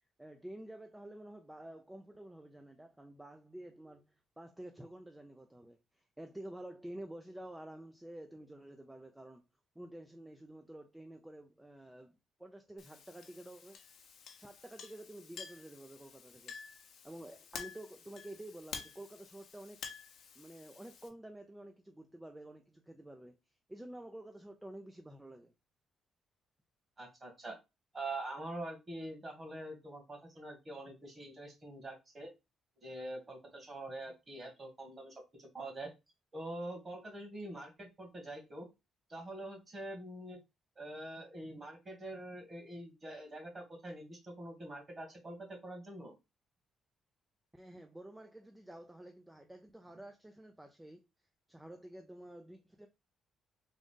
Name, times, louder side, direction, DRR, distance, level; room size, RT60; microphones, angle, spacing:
voice 1, 0.2-9.4 9.8-13.8 14.3-16.5 17.0-19.8 20.4-23.4 23.7-25.5 47.5-51.0 51.5-52.9, right 1 dB, 10° right, 0.5 m, -50 dB
Chink clink, 12.8-21.1, left 6 dB, 70° left, 0.8 m, -50 dB
voice 2, 27.0-27.6 27.9-32.3 32.8-35.9 36.3-38.7 39.1-40.4 40.8-46.1, right 1 dB, 30° right, 1.9 m, -45 dB
3.9 x 2.5 x 3.6 m
cardioid pair, 90°, 0 cm